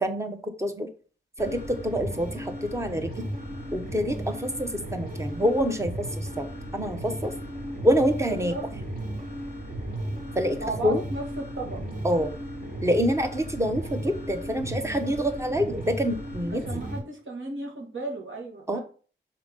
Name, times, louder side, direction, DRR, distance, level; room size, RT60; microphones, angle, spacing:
voice 1, 0.0-0.9 1.4-3.3 3.7-6.5 6.7-7.3 7.8-8.5 10.3-11.0 12.0-12.3 12.8-16.6 18.7-18.8, equal, 15° right, 7 dB, 1.0 m, -26 dB
sound 1, 1.4-17.0, right 1 dB, 50° right, 3.0 m, -35 dB
voice 2, 8.3-8.6 10.6-11.8 16.5-18.8, right 2 dB, 85° right, 0 dB, 1.9 m, -35 dB
5.9 x 4.4 x 5.2 m, 0.40 s
wide cardioid pair, 75°, 20 cm